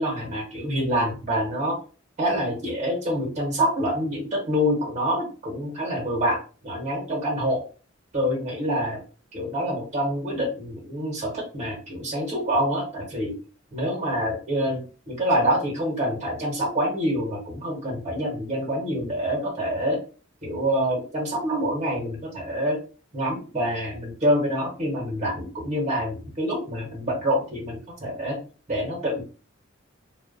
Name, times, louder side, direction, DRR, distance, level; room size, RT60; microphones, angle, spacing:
voice 1, 0.0-1.8 2.2-7.6 8.1-9.0 9.3-13.4 13.7-20.0 20.4-22.8 23.1-28.4 28.7-29.2, equal, 35° right, -2 dB, 1.2 m, -26 dB
2.4 x 2.1 x 3.7 m, 0.35 s
head